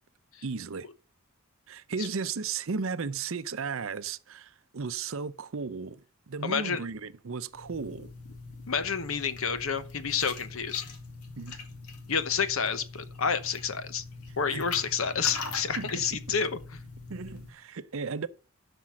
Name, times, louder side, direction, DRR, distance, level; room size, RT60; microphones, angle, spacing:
voice 1, 0.4-0.9 1.7-8.1 11.4-11.6 14.5-14.6 15.8-16.4 17.1-18.3, right 5 dB, 65° right, 0.6 m, -35 dB
voice 2, 6.4-6.8 8.7-10.8 12.1-14.0 14.4-16.6, left 6 dB, 65° left, 1.0 m, -29 dB
sound 1, 7.5-17.5, left 3 dB, 90° left, 2.0 m, -42 dB
11.5 x 5.4 x 6.0 m
head